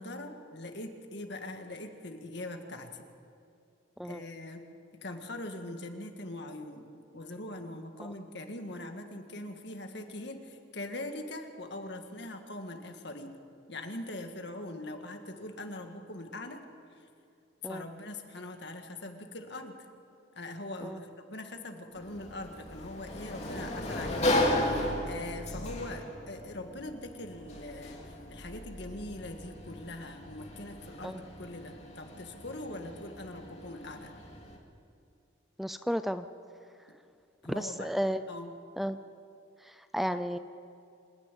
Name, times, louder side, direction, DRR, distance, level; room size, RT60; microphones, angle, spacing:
voice 1, 0.0-3.1 4.0-4.6 5.0-6.9 7.1-13.4 13.7-16.6 16.9-17.1 17.6-19.9 20.4-34.1 36.9-37.0 37.4-37.9 38.3-38.5, left 2 dB, 65° left, 5 dB, 2.0 m, -42 dB
Sliding door, 21.9-34.6, left 1 dB, 35° left, 3.0 m, -35 dB
voice 2, 35.6-36.3 37.5-38.2 38.8-39.0 39.7-40.4, equal, ahead, 10 dB, 0.4 m, -33 dB
27.0 x 10.5 x 9.2 m, 2.5 s
head